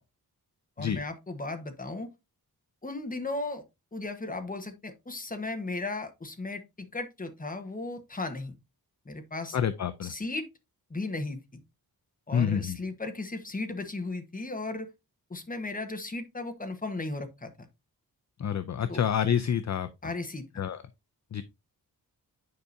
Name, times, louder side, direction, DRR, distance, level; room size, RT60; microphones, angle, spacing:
voice 1, 0.8-2.1 2.8-3.6 3.9-8.5 9.0-9.6 10.0-10.5 10.9-11.6 12.3-14.9 15.3-17.5 18.9-19.0 20.0-20.6, left 2 dB, 20° left, 1.2 m, -36 dB
voice 2, 9.5-10.1 12.3-12.8 18.4-19.9 20.6-20.8 21.3-21.4, left 8 dB, 45° left, 0.5 m, -28 dB
9.6 x 4.9 x 2.6 m
wide cardioid pair, 150°, 38 cm